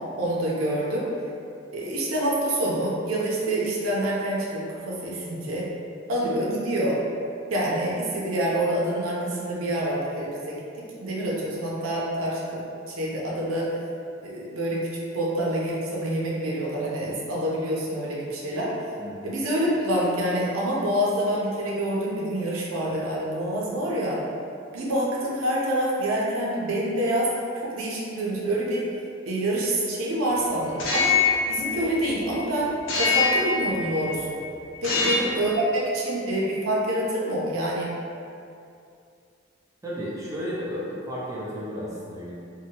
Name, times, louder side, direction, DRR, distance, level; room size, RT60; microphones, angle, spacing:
voice 1, 0.2-1.1 1.7-5.7 6.1-7.0 7.5-10.5 11.0-13.7 14.2-14.9 15.1-18.7 19.2-24.2 24.7-27.3 27.6-28.8 29.3-31.2 31.5-34.3 34.8-37.9, right 1 dB, 85° right, -5 dB, 0.5 m, -26 dB
voice 2, 19.0-19.3 34.9-35.2 39.8-42.3, equal, 15° right, -7 dB, 0.4 m, -33 dB
sound 1, 30.7-32.3 32.9-34.2 34.7-35.5, left 4 dB, 70° left, 0.5 m, -24 dB
2.7 x 2.1 x 2.7 m, 2.5 s
head